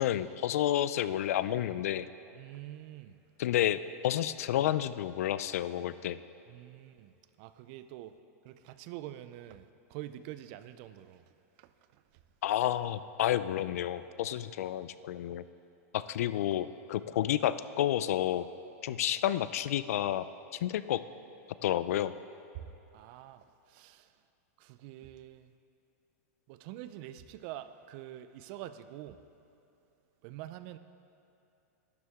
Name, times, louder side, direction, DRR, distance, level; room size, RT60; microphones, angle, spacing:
voice 1, 0.0-2.1 3.4-6.2 12.4-15.4 15.9-18.5 18.8-20.3 20.5-21.0 21.6-22.1, left 12 dB, 65° left, 15 dB, 0.3 m, -30 dB
voice 2, 2.4-3.2 6.5-8.2 8.4-11.3 11.6-12.0 18.9-19.0 22.5-24.1 24.6-25.5 26.5-29.2 30.2-30.8, right 13 dB, 35° right, 12 dB, 0.3 m, -46 dB
12.0 x 9.6 x 3.6 m, 2.7 s
supercardioid pair, 160°, 8 cm